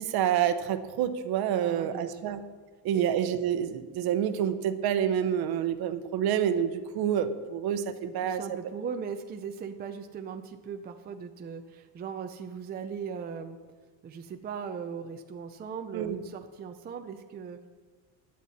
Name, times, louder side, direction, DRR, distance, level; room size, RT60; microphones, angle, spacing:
voice 1, 0.0-2.4 2.8-8.4 15.9-16.2, right 9 dB, 60° right, 10 dB, 1.0 m, -28 dB
voice 2, 1.5-2.3 2.9-3.0 8.0-13.6 14.0-17.7, right 6 dB, 25° right, 6 dB, 0.5 m, -39 dB
16.0 x 11.0 x 4.2 m, 1.3 s
cardioid pair, 170°, 43 cm